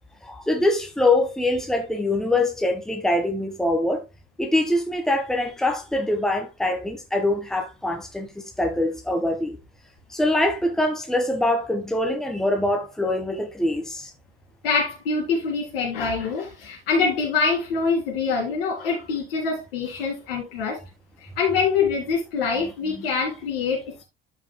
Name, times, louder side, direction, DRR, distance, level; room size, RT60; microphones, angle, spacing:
voice 1, 0.2-4.0 4.4-9.6 10.1-14.1 22.6-23.1, left 1 dB, ahead, 1.5 m, -24 dB
voice 2, 14.6-20.8 21.2-24.0, left 5 dB, 70° left, 3.7 m, -25 dB
12.5 x 5.9 x 2.3 m
figure-of-eight pair, 60°, 30 cm